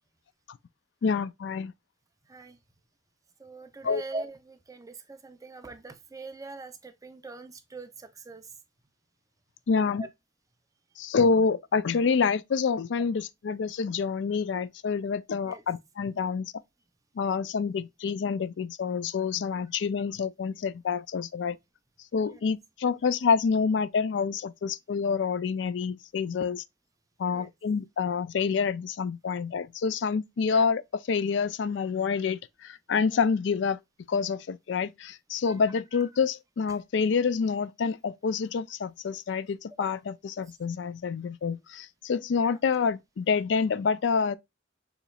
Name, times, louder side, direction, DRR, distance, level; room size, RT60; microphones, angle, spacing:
voice 1, 1.0-1.7 3.8-4.0 9.7-10.1 11.0-16.5 17.2-21.6 22.1-26.6 27.2-33.8 34.1-44.4, left 5 dB, 70° left, 0.4 m, -27 dB
voice 2, 3.4-8.5 10.0-10.1 15.4-15.6 22.3-22.4 27.3-27.5 30.5-30.7 33.1-33.2 35.5-35.6 35.9-36.0 39.8-39.9 42.4-42.6, right 3 dB, 20° right, 0.5 m, -42 dB
6.7 x 3.1 x 2.3 m
head